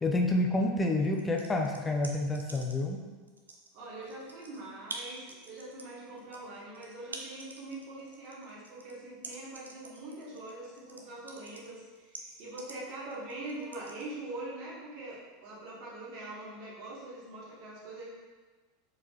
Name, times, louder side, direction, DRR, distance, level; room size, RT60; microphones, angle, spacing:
voice 1, 0.0-3.0, left 2 dB, 15° left, 2 dB, 0.6 m, -28 dB
sound 1, 1.0-2.9 3.3-14.0, right 3 dB, 85° right, 0.4 m, -46 dB
voice 2, 3.7-18.1, right 2 dB, 55° right, -6 dB, 1.5 m, -43 dB
4.5 x 4.3 x 2.4 m, 1.3 s
figure-of-eight pair, 85°, 0 cm